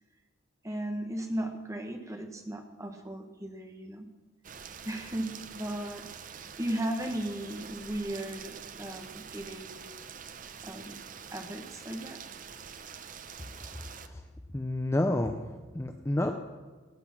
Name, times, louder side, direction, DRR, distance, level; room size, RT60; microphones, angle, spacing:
voice 1, 0.6-4.1 4.8-6.3 6.6-9.9 10.6-11.0 11.3-12.2, right 1 dB, 15° right, 5 dB, 1.3 m, -36 dB
Rain, 4.4-14.1, right 7 dB, 40° right, 0.6 m, -46 dB
voice 2, 13.5-14.2 14.5-15.4 15.7-16.3, left 1 dB, 15° left, 6 dB, 0.5 m, -30 dB
17.5 x 8.1 x 6.0 m, 1.4 s
head